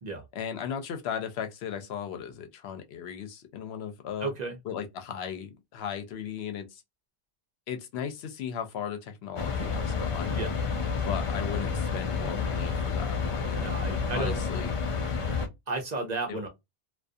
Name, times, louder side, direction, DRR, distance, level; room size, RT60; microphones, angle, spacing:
voice 1, 0.4-4.3 4.7-6.7 7.7-10.4 11.0-13.7 14.1-14.7 16.3-16.5, left 8 dB, 80° left, 0.8 m, -36 dB
voice 2, 4.2-4.6 10.3-10.6 13.6-14.4 15.7-16.5, right 3 dB, 50° right, 0.7 m, -33 dB
sound 1, 9.4-15.5, left 5 dB, 50° left, 0.4 m, -30 dB
2.4 x 2.3 x 2.5 m
omnidirectional pair, 1.1 m